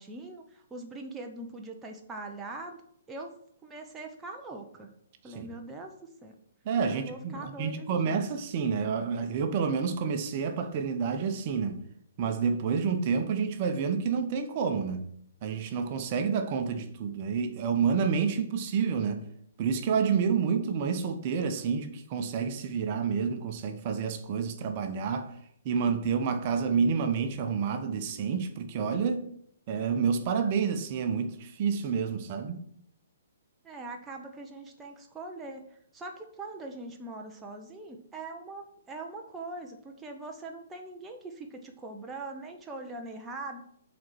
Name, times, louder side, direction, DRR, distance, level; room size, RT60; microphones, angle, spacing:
voice 1, 0.0-2.8 3.1-3.4 3.6-4.9 5.2-6.4 6.9-8.2 33.6-43.6, right 2 dB, 10° right, 0.9 m, -42 dB
voice 2, 6.6-11.8 12.2-15.1 15.4-19.2 19.6-25.3 25.6-29.2 29.7-32.6, right 6 dB, 40° right, 1.0 m, -29 dB
7.5 x 4.2 x 6.3 m
figure-of-eight pair, 125°, 0 cm